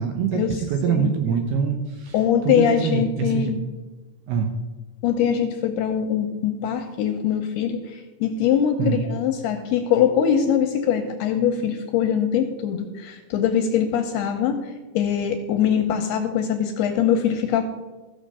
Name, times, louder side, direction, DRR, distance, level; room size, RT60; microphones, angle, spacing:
voice 1, 0.0-3.6 4.3-4.5 8.8-9.0, right 6 dB, 75° right, 5 dB, 2.5 m, -24 dB
voice 2, 2.1-3.6 5.0-14.6 14.9-17.6, left 8 dB, 75° left, 5 dB, 2.5 m, -22 dB
15.0 x 7.0 x 5.5 m, 1.2 s
omnidirectional pair, 5.3 m